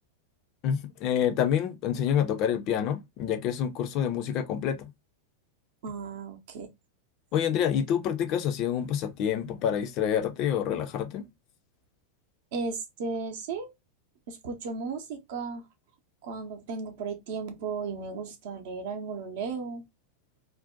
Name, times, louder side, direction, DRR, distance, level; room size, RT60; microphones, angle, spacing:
voice 1, 0.6-4.9 7.3-11.2, left 9 dB, 40° left, 0.4 m, -27 dB
voice 2, 5.8-6.7 12.5-13.7 14.3-15.6 16.2-19.8, right 4 dB, 55° right, 0.7 m, -35 dB
2.5 x 2.1 x 2.4 m
figure-of-eight pair, 90°, 0 cm